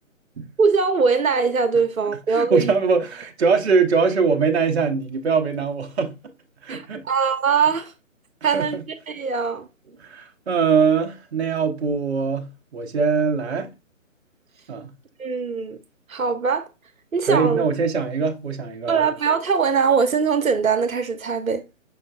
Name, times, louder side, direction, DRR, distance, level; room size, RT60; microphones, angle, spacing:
voice 1, 0.6-2.7 6.7-7.9 8.4-9.7 15.2-15.8 16.1-16.7 17.1-17.6 18.9-21.6, right 5 dB, 85° right, 0.9 m, -21 dB
voice 2, 2.3-6.1 6.6-7.1 8.5-8.8 10.0-13.7 14.7-14.9 17.3-19.0, right 5 dB, 55° right, 0.9 m, -22 dB
5.7 x 3.7 x 2.4 m
figure-of-eight pair, 150°, 40 cm